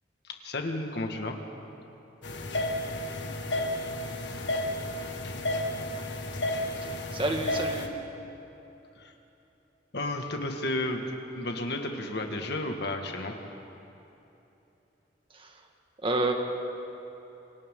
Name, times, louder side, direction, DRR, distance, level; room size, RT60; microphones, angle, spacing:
voice 1, 0.3-1.4 9.0-9.1 9.9-11.0 11.4-13.3, left 2 dB, 65° left, 3 dB, 1.9 m, -32 dB
sound 1, 2.2-7.9, left 1 dB, 80° left, 1.7 m, -32 dB
voice 2, 6.8-7.9 15.3-15.7 16.0-16.3, right 2 dB, 30° right, 3 dB, 1.8 m, -30 dB
28.0 x 24.5 x 3.8 m, 3.0 s
head